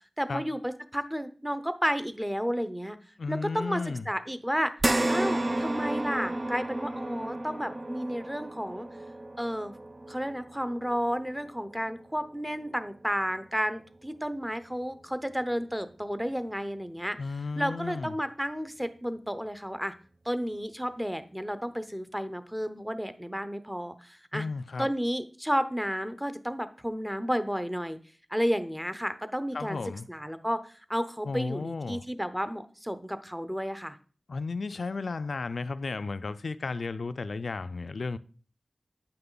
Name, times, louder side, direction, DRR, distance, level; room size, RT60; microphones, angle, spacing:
voice 1, 0.2-3.0 3.3-4.7 5.1-8.9 9.4-9.7 10.1-17.2 17.6-19.9 20.2-24.5 24.8-28.0 28.3-29.8 30.1-34.0, equal, 5° right, 0.7 m, -32 dB
voice 2, 3.2-4.1 17.2-18.1 24.3-24.9 29.5-30.1 31.2-32.0 34.3-38.2, left 4 dB, 70° left, 0.4 m, -34 dB
sound 1, 4.8-13.4 13.9-14.0 15.4-15.5, right 1 dB, 40° right, 0.5 m, -33 dB
8.8 x 5.7 x 3.9 m
wide cardioid pair, 65°, 0 cm